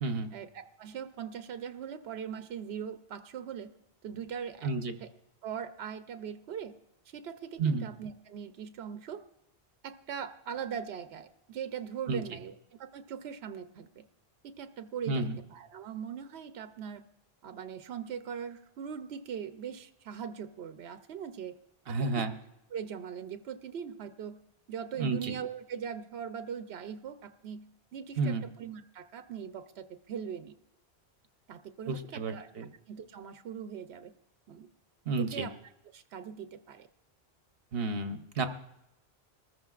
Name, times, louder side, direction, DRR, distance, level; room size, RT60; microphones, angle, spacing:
voice 1, 0.3-3.7 4.0-4.7 5.0-5.1 5.4-6.7 7.1-9.2 9.8-14.0 14.4-15.2 15.5-17.0 17.4-21.5 21.9-22.3 22.7-24.4 24.7-27.6 27.9-30.5 31.5-32.5 32.9-34.1 34.5-34.7 35.2-35.5 35.9-36.9, right 7 dB, 90° right, 9 dB, 0.9 m, -40 dB
voice 2, 4.6-4.9 7.6-7.9 12.1-12.2 15.1-15.4 21.9-22.3 25.0-25.3 28.2-28.5 31.9-32.7 35.1-35.5 37.7-38.4, right 3 dB, 70° right, 7 dB, 1.1 m, -31 dB
24.5 x 14.0 x 2.4 m, 0.86 s
omnidirectional pair, 1.0 m